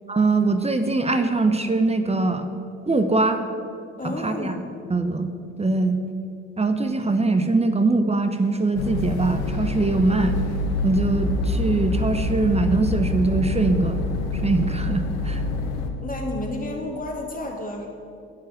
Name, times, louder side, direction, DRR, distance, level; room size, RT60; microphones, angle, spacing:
voice 1, 0.1-2.5 2.9-3.4 4.0-4.5 4.9-5.3 5.6-6.0 6.6-10.4 10.8-14.0 14.3-15.4, right 3 dB, 20° right, 7 dB, 0.9 m, -22 dB
voice 2, 4.0-4.6 16.0-17.9, left 2 dB, 25° left, 0 dB, 2.7 m, -31 dB
sound 1, 8.8-15.9, left 3 dB, 85° left, 1.1 m, -26 dB
9.3 x 7.7 x 7.6 m, 2.5 s
hypercardioid pair, 55°, 32 cm